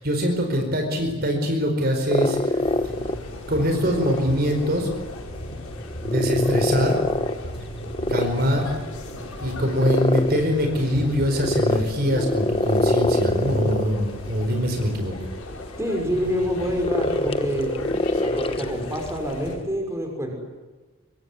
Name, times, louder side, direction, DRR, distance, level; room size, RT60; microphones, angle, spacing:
voice 1, 0.0-2.6 3.5-4.9 6.0-7.0 8.1-8.7 9.4-15.1, equal, 45° right, 4 dB, 4.8 m, -23 dB
sound 1, 2.1-19.6, left 1 dB, 25° left, 1.1 m, -27 dB
sound 2, 2.6-19.5, left 1 dB, 85° left, 6.0 m, -37 dB
voice 2, 15.8-17.7 18.2-20.3, equal, 15° right, 2 dB, 6.0 m, -27 dB
25.5 x 24.0 x 9.7 m, 1.2 s
head